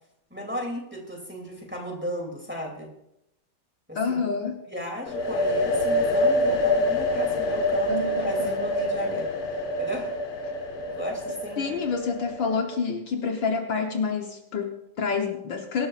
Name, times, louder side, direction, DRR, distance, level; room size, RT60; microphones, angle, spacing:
voice 1, 0.3-2.9 3.9-4.2 4.7-9.3 9.8-10.1 10.8-11.8, equal, 5° right, 0 dB, 2.4 m, -35 dB
voice 2, 4.0-4.6 7.9-8.6 11.6-15.9, left 5 dB, 65° left, 3 dB, 1.6 m, -28 dB
sound 1, 5.1-12.7, left 1 dB, 85° left, 2.3 m, -26 dB
23.5 x 12.5 x 2.4 m, 0.83 s
omnidirectional pair, 2.4 m